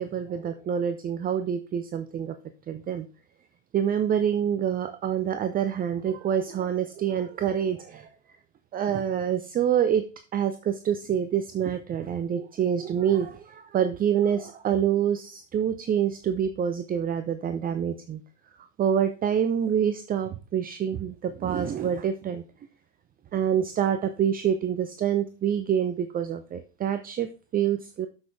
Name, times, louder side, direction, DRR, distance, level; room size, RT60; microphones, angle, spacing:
voice 1, 0.0-2.3 2.7-3.1 3.7-8.1 8.7-10.0 10.3-18.2 18.8-22.4 23.3-28.1, right 9 dB, 25° right, 10 dB, 0.8 m, -26 dB
12.5 x 6.2 x 3.5 m, 0.34 s
hypercardioid pair, 90°, 36 cm